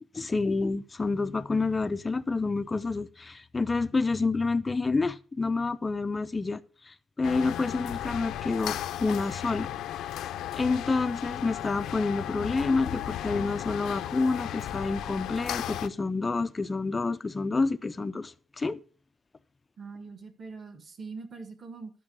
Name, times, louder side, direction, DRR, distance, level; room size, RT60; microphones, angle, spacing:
voice 1, 0.1-6.6 6.9-9.7 10.5-18.8, left 3 dB, 15° left, 0.4 m, -28 dB
sound 1, 7.2-15.9, left 12 dB, 70° left, 0.6 m, -35 dB
voice 2, 19.8-21.9, right 4 dB, 30° right, 1.3 m, -42 dB
11.5 x 6.1 x 6.0 m
cardioid pair, 180°, 0 cm